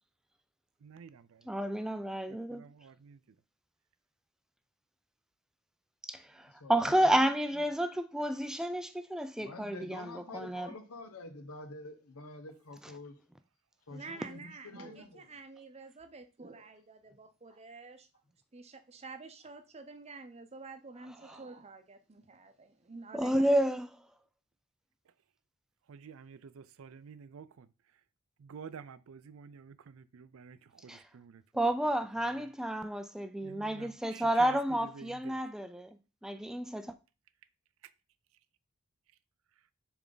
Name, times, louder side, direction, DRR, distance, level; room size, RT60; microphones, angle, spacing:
voice 1, 0.8-1.5 2.3-3.4 25.9-27.7 28.4-31.4 32.2-32.5 33.4-35.4, right 6 dB, 70° right, 0.4 m, -50 dB
voice 2, 1.5-2.6 6.1-10.7 21.3-21.4 23.1-23.8 30.9-31.0 31.5-35.9 36.2-36.9, right 1 dB, 5° right, 0.3 m, -30 dB
voice 3, 6.6-7.3 9.4-13.2 13.9-15.4 16.5-16.6, left 2 dB, 90° left, 1.0 m, -48 dB
voice 4, 13.9-18.1 18.5-23.5, right 3 dB, 30° right, 0.7 m, -48 dB
7.1 x 3.5 x 3.9 m
head